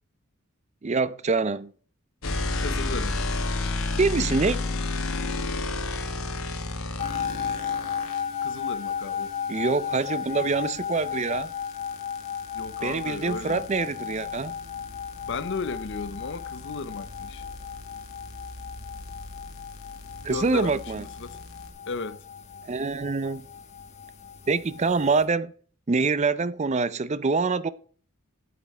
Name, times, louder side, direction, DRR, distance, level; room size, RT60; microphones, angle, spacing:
voice 1, 0.8-1.7 4.0-4.6 9.5-11.5 12.8-14.5 20.2-21.0 22.6-23.4 24.5-25.5 25.9-27.7, right 4 dB, 30° right, 0.4 m, -25 dB
sound 1, 2.2-8.2 10.7-21.7, left 2 dB, 75° left, 1.4 m, -33 dB
voice 2, 2.6-3.3 8.4-9.3 12.5-13.6 15.3-17.4 20.2-21.4 21.9-22.2, left 4 dB, 60° left, 0.7 m, -35 dB
sound 2, 7.0-25.3, left 7 dB, 35° left, 1.4 m, -35 dB
8.5 x 8.1 x 4.2 m
head